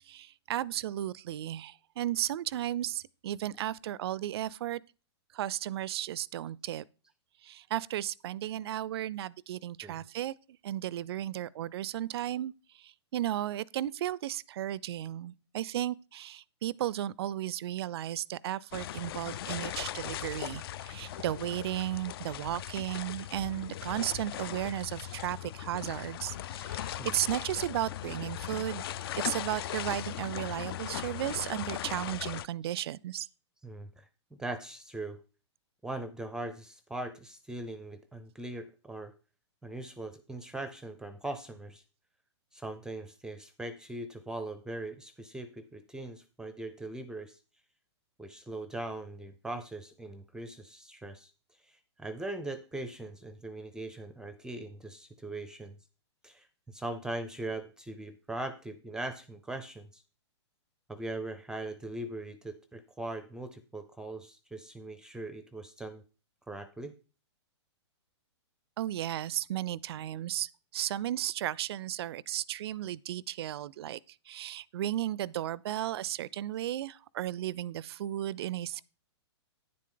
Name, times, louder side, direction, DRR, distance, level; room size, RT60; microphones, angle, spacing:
voice 1, 0.1-4.8 5.3-6.8 7.4-10.3 10.6-12.5 12.8-28.8 29.2-33.3 68.8-74.0 74.3-78.9, right 12 dB, 60° right, 0.4 m, -34 dB
sound 1, 18.7-32.5, left 12 dB, 55° left, 0.4 m, -38 dB
voice 2, 33.6-34.1 34.4-35.2 35.8-39.1 39.6-41.8 42.5-47.4 48.2-51.3 51.6-55.8 56.2-60.0 60.9-66.0 66.5-66.9, right 2 dB, 5° right, 0.5 m, -40 dB
9.9 x 7.6 x 3.8 m
hypercardioid pair, 135°, 15 cm